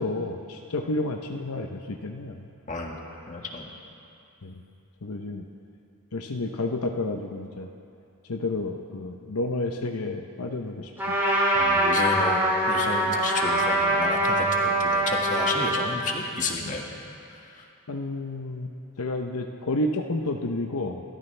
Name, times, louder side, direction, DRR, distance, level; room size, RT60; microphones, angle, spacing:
voice 1, 0.0-2.4 4.4-4.6 5.0-5.4 6.1-7.7 8.3-11.2 16.6-16.7 17.9-18.7 19.0-21.0, left 2 dB, 80° left, 3 dB, 0.8 m, -30 dB
voice 2, 2.7-3.0 3.3-3.7 11.5-16.8 17.5-17.6, left 3 dB, 35° left, 0 dB, 1.8 m, -31 dB
Trumpet, 11.0-15.9, right 1 dB, 10° right, 3.5 m, -23 dB
28.0 x 14.0 x 3.3 m, 2.6 s
head